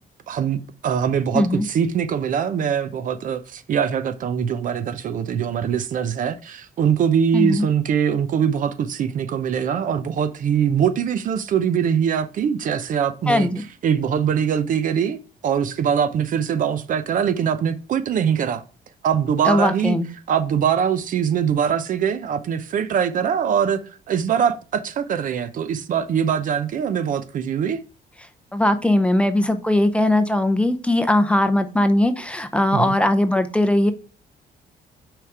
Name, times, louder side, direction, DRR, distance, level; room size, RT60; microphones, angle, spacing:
voice 1, 0.3-13.5 13.8-15.2 15.4-18.6 19.0-19.9 20.3-23.8 24.1-27.8 32.7-33.0, right 8 dB, 50° right, 0.6 m, -22 dB
voice 2, 7.3-7.7 13.3-13.6 19.4-20.1 28.5-33.9, left 1 dB, 5° left, 0.6 m, -19 dB
6.0 x 5.0 x 4.6 m
cardioid pair, 155°, 17 cm